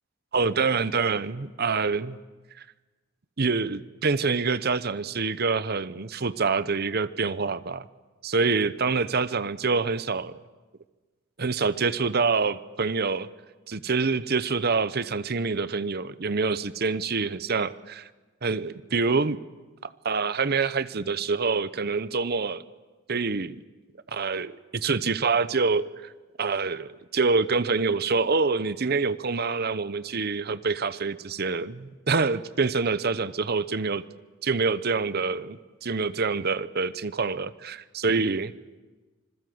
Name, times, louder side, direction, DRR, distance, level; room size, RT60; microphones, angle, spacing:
voice 1, 0.3-2.2 3.4-7.9 8.2-10.4 11.4-13.3 13.7-18.1 18.4-19.4 20.0-22.6 23.1-23.6 24.1-26.1 26.4-34.0 34.4-38.5, right 4 dB, 50° right, 15 dB, 0.8 m, -26 dB
26.5 x 21.0 x 7.9 m, 1.3 s
head